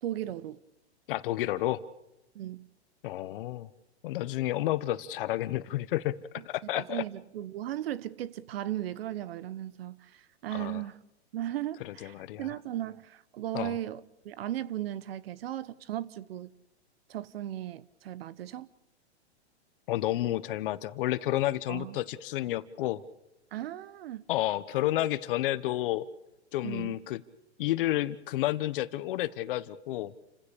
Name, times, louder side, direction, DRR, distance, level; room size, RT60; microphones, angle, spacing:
voice 1, 0.0-0.6 2.3-2.7 6.4-6.5 6.7-11.0 11.3-16.5 17.1-18.7 21.7-22.0 23.5-24.2 26.6-27.0, right 12 dB, 60° right, 1.2 m, -36 dB
voice 2, 1.1-1.8 3.0-3.7 4.0-6.2 6.5-7.0 10.5-10.8 11.8-12.5 13.5-13.7 19.9-23.0 24.3-26.1 26.5-27.2 27.6-30.1, left 15 dB, 50° left, 1.3 m, -30 dB
30.0 x 16.0 x 6.9 m
hypercardioid pair, 140°, 34 cm